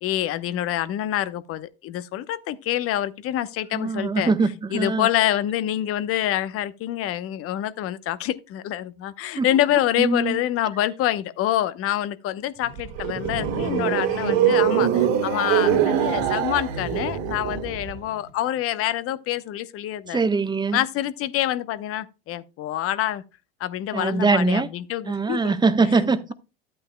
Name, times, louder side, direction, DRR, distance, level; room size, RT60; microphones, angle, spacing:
voice 1, 0.0-4.3 4.7-20.2 20.7-23.2 23.6-25.5, left 12 dB, 50° left, 0.9 m, -26 dB
voice 2, 3.7-5.1 9.3-9.5 10.0-10.4 20.1-20.8 23.9-24.7 25.1-26.2, right 4 dB, 15° right, 1.0 m, -22 dB
sound 1, 12.6-18.0, right 9 dB, 65° right, 2.5 m, -23 dB
12.5 x 8.8 x 2.2 m
hypercardioid pair, 85°, 30 cm